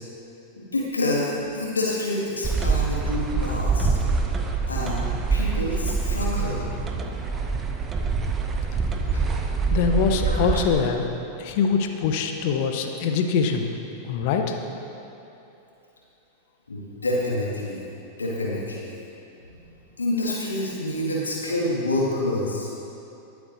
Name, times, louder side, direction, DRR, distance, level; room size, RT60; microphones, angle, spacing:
voice 1, 0.6-3.9 4.7-6.6 9.1-9.2 10.2-10.7 16.7-17.9 18.2-18.9 20.0-22.7, left 1 dB, 75° left, -4 dB, 2.0 m, -27 dB
sound 1, 2.4-10.7, right 4 dB, 20° right, 0.9 m, -25 dB
voice 2, 9.7-11.0 11.4-13.7 14.0-14.6, left 6 dB, 50° left, 5 dB, 0.9 m, -23 dB
22.5 x 8.0 x 2.7 m, 2.9 s
figure-of-eight pair, 90°, 0 cm